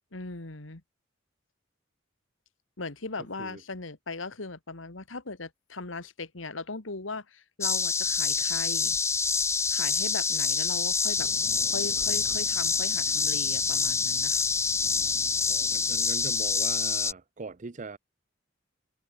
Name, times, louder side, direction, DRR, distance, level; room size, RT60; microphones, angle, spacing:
voice 1, 0.1-0.8 2.8-9.0 9.7-11.3 11.7-14.4, left 3 dB, 85° left, 2.1 m, -38 dB
sound 1, 7.6-17.1, left 5 dB, 15° left, 0.4 m, -26 dB
sound 2, 11.2-16.6, equal, 5° right, 4.5 m, -51 dB
voice 2, 15.5-18.0, right 3 dB, 40° right, 0.7 m, -41 dB
head